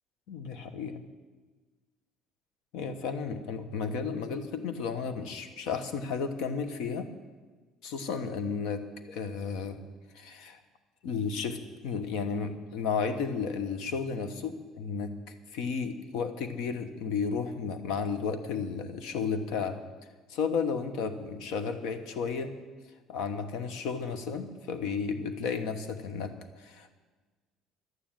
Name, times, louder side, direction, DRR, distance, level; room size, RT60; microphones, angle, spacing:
voice 1, 0.3-1.0 2.7-7.1 7.8-9.8 10.1-10.6 11.0-15.1 15.5-19.8 20.3-22.6 23.1-26.9, left 5 dB, 70° left, 10 dB, 1.2 m, -33 dB
11.5 x 9.5 x 9.0 m, 1.3 s
cardioid pair, 170°, 0 cm